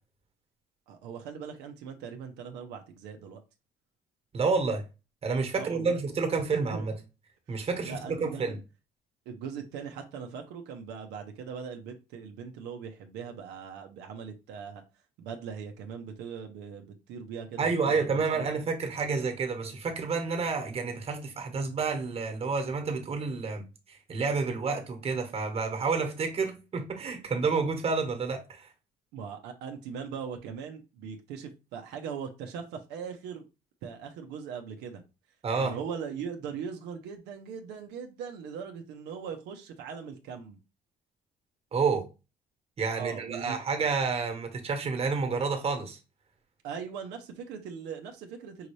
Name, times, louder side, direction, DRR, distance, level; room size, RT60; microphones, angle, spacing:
voice 1, 0.9-3.4 5.5-6.0 6.7-6.8 7.5-8.6 9.3-14.8 15.2-18.5 29.1-33.5 33.8-35.0 35.5-40.6 43.0-43.6 46.6-48.7, right 6 dB, 90° right, 0.8 m, -40 dB
voice 2, 4.3-4.8 5.2-6.9 7.5-8.6 17.6-28.7 35.4-35.7 41.7-42.0 42.8-46.0, right 4 dB, 35° right, 1.3 m, -29 dB
5.6 x 2.7 x 3.2 m
cardioid pair, 110°, 17 cm